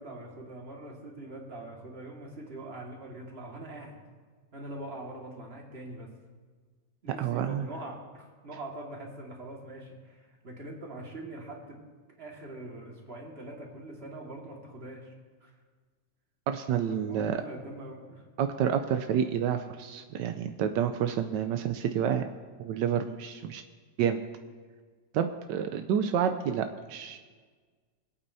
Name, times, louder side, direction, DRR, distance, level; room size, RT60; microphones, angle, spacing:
voice 1, 0.0-4.0 4.5-6.1 7.0-11.8 12.2-15.1 15.4-15.5 16.9-18.2, right 2 dB, 35° right, -1 dB, 2.1 m, -43 dB
voice 2, 7.2-7.6 16.5-17.4 18.4-22.2 22.6-23.6 24.0-24.2 25.1-27.2, right 8 dB, 85° right, 7 dB, 1.3 m, -29 dB
26.0 x 8.7 x 2.7 m, 1.5 s
omnidirectional pair, 1.9 m